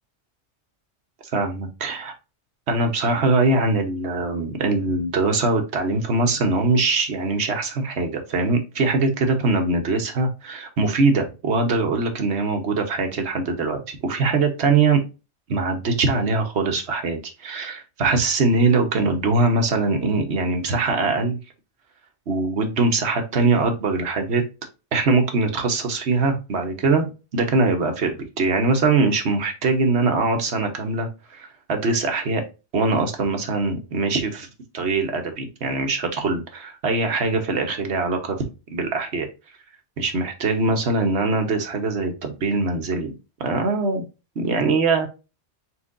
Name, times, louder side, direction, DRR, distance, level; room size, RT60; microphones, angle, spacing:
voice 1, 1.3-2.1 2.7-15.0 15.5-21.4 22.3-24.4 24.9-27.1 27.3-32.4 32.7-34.5 34.7-39.3 40.0-43.1 43.4-44.0 44.4-45.1, right 3 dB, 70° right, 4 dB, 1.3 m, -22 dB
4.4 x 4.3 x 2.5 m, 0.29 s
omnidirectional pair, 1.2 m